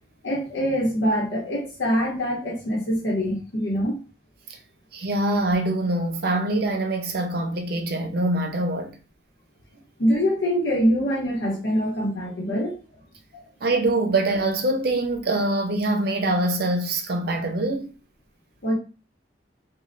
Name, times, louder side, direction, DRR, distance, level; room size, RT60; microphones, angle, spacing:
voice 1, 0.2-4.0 10.0-12.8 13.3-13.4 18.6-18.7, equal, 85° left, 1.0 m, -24 dB
voice 2, 4.9-9.0 13.6-17.9, right 2 dB, 55° right, 0.6 m, -24 dB
3.1 x 2.3 x 3.9 m
head